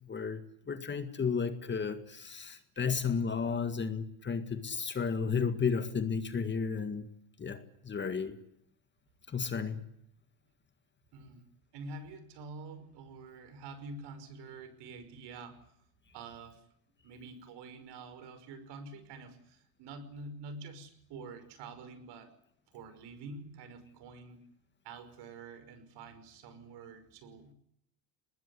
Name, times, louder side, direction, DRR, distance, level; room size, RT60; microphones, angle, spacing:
voice 1, 0.0-0.4 0.7-7.1 7.4-8.4 9.3-9.9, left 5 dB, 20° left, 10 dB, 1.9 m, -33 dB
voice 2, 11.1-11.4 11.7-15.6 16.1-16.7 17.0-22.3 22.7-24.4 24.8-27.5, right 3 dB, 55° right, 11 dB, 5.8 m, -47 dB
23.0 x 20.5 x 9.7 m, 0.72 s
supercardioid pair, 120°, 48 cm